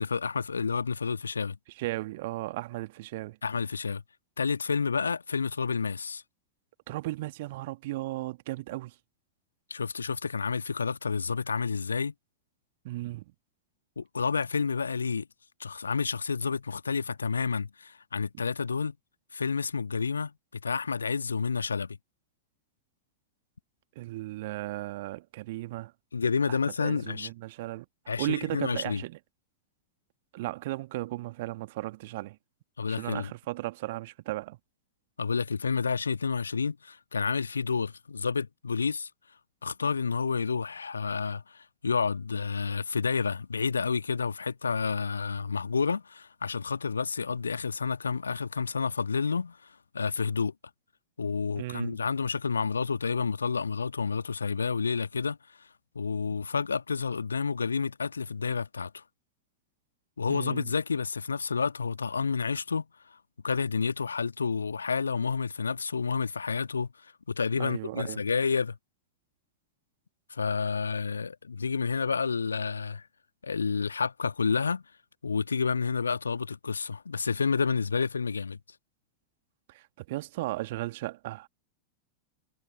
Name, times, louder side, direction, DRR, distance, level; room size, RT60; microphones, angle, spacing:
voice 1, 0.0-1.6 3.4-4.0 4.4-6.2 9.7-12.1 14.0-15.3 15.6-18.9 19.3-22.0 26.1-27.3 28.1-29.0 32.8-33.3 35.2-39.1 39.6-50.5 51.2-55.4 55.9-59.0 60.2-63.2 63.4-66.9 67.3-68.8 70.3-73.0 73.4-74.8 75.2-78.6, left 5 dB, 75° left, 1.7 m, -30 dB
voice 2, 1.8-3.4 6.9-8.9 12.8-13.2 23.9-25.9 26.5-29.2 30.3-32.4 32.9-34.6 51.6-52.0 60.3-60.7 67.6-68.2 79.7-81.5, right 18 dB, 50° right, 1.8 m, -36 dB
figure-of-eight pair, 90°, 0 cm